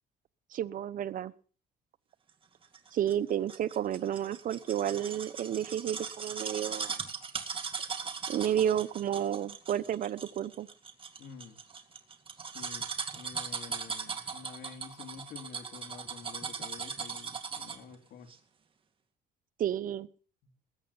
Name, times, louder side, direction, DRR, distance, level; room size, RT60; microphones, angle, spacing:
voice 1, 0.5-1.3 2.9-7.1 8.3-10.7 19.6-20.1, right 10 dB, 55° right, 14 dB, 0.9 m, -31 dB
sound 1, 2.7-17.9 18.3-18.4, right 5 dB, 30° right, 2.2 m, -39 dB
voice 2, 11.2-11.6 12.5-18.3 20.4-20.5, left 7 dB, 70° left, 6 dB, 2.9 m, -49 dB
20.5 x 9.0 x 5.5 m, 0.40 s
cardioid pair, 110°, 17 cm